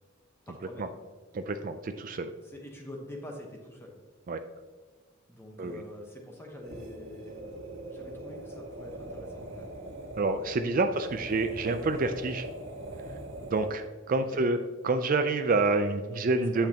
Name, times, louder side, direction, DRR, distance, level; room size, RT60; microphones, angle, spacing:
voice 1, 0.5-0.9 2.4-4.0 5.3-7.6 7.9-9.7 10.7-11.1 14.2-14.5 16.1-16.7, left 1 dB, 10° left, 0 dB, 1.0 m, -45 dB
voice 2, 1.3-2.3 4.3-4.4 5.6-5.8 10.2-12.4 13.5-14.6 14.8-16.7, right 3 dB, 45° right, 8 dB, 0.4 m, -28 dB
sound 1, 6.5-13.9, right 1 dB, 85° right, 1.5 m, -42 dB
9.0 x 8.2 x 2.9 m, 1.4 s
head